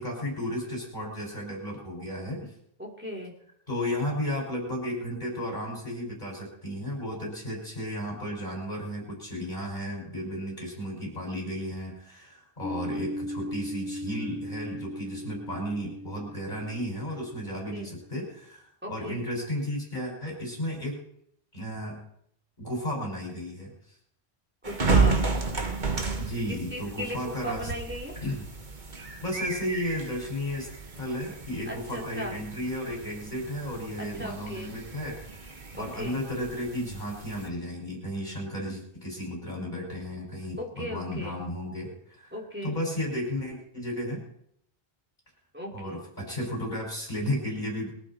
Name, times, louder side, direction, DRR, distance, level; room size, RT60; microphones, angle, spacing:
voice 1, 0.0-2.5 3.7-21.0 21.5-22.0 22.6-23.9 26.1-27.7 28.1-28.4 29.2-30.7 31.0-44.2 45.7-47.9, equal, 45° left, -1 dB, 6.0 m, -34 dB
voice 2, 2.8-3.3 17.7-17.9 18.8-19.2 24.6-25.2 26.5-28.1 31.7-32.3 34.2-34.7 35.8-36.2 40.6-41.4 42.3-42.7 45.5-46.0, equal, 10° right, -2 dB, 3.5 m, -37 dB
sound 1, 12.6-18.1, equal, 25° left, 7.4 m, -38 dB
sound 2, 24.6-37.5, right 4 dB, 50° right, 1.5 m, -32 dB
22.5 x 12.0 x 4.4 m, 0.72 s
omnidirectional pair, 1.1 m